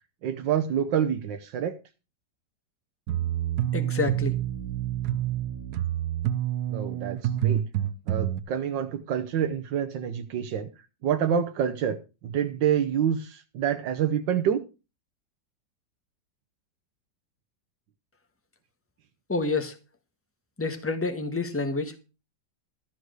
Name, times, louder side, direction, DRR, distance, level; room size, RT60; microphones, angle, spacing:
voice 1, 0.2-1.8 6.7-7.6 8.1-10.7 11.0-12.0 12.2-14.6, right 9 dB, 90° right, 1.6 m, -27 dB
sound 1, 3.1-8.4, right 11 dB, 70° right, 1.3 m, -28 dB
voice 2, 3.7-4.4 19.3-19.8 20.6-22.0, left 3 dB, 10° left, 1.2 m, -28 dB
14.0 x 4.9 x 7.9 m
omnidirectional pair, 1.9 m